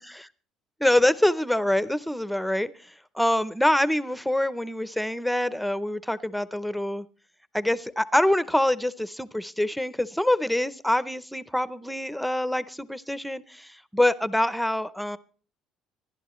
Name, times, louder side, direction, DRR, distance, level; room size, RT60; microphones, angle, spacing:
voice 1, 0.8-7.1 7.5-15.2, left 1 dB, ahead, 15 dB, 0.6 m, -25 dB
26.0 x 11.5 x 3.1 m, 0.41 s
cardioid pair, 155°, 0 cm